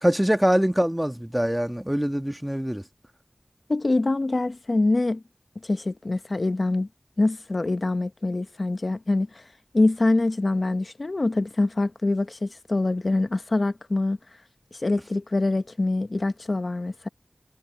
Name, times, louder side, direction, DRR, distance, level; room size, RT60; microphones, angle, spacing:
voice 1, 0.0-2.8, equal, 10° right, 1.3 m, -23 dB
voice 2, 3.7-5.2 5.6-6.9 7.2-9.4 9.7-14.2 14.8-17.1, left 2 dB, 60° left, 0.9 m, -24 dB
wide cardioid pair, 50°, 0 cm